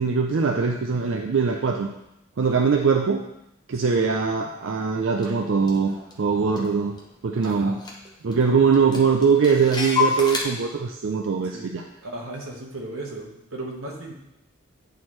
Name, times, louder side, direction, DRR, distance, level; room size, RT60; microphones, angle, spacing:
voice 1, 0.0-1.9 2.4-3.2 3.7-6.9 7.2-7.8 8.2-11.9, right 5 dB, 60° right, 2 dB, 0.4 m, -22 dB
Clock, 5.2-5.3 5.7-7.1 7.4-7.5 7.8-8.4 8.7-10.4, left 5 dB, 20° left, 0.9 m, -28 dB
voice 2, 7.4-7.8 11.5-11.7 12.0-14.1, right 2 dB, 90° right, 0 dB, 1.4 m, -36 dB
9.0 x 4.4 x 3.2 m, 0.85 s
head